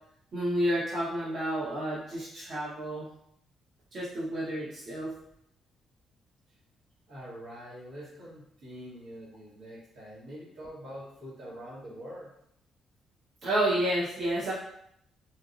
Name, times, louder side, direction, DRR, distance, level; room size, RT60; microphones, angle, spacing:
voice 1, 0.3-3.1 3.9-5.1 13.4-14.5, right 1 dB, 50° right, -8 dB, 1.0 m, -30 dB
voice 2, 7.1-12.3, equal, 75° right, -7 dB, 1.5 m, -45 dB
3.0 x 2.5 x 2.6 m, 0.72 s
cardioid pair, 90°, 0 cm